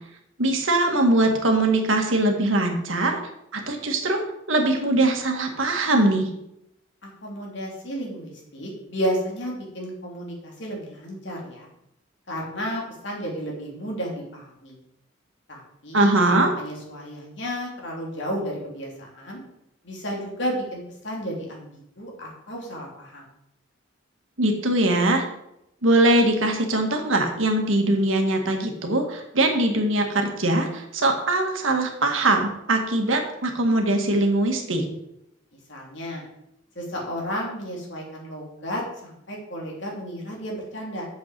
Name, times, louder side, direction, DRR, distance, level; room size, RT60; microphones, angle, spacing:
voice 1, 0.4-3.2 3.5-6.3 15.9-16.5 24.4-25.2 25.8-34.8, right 2 dB, 75° right, 3 dB, 1.9 m, -21 dB
voice 2, 7.2-11.7 12.3-14.8 15.5-19.4 19.8-21.7 22.0-23.2 35.7-36.2 36.7-41.1, equal, 60° left, -2 dB, 3.2 m, -32 dB
7.1 x 6.6 x 7.6 m, 0.81 s
head